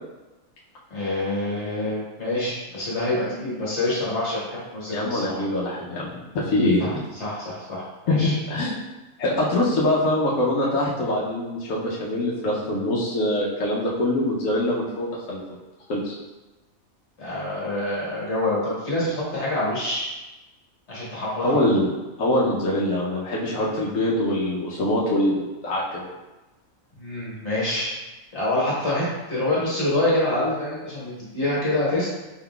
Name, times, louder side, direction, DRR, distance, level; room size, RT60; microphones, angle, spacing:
voice 1, 0.9-5.4 6.8-6.9 7.2-8.4 17.2-20.1 20.9-21.6 27.0-28.0 28.3-32.1, left 1 dB, 55° left, -7 dB, 1.5 m, -26 dB
voice 2, 4.9-6.1 6.3-7.0 8.1-8.2 8.5-8.8 9.2-15.4 15.9-16.1 21.4-21.9 22.2-26.1, left 1 dB, 70° left, -5 dB, 1.1 m, -23 dB
4.5 x 3.7 x 2.3 m, 1.1 s
omnidirectional pair, 1.5 m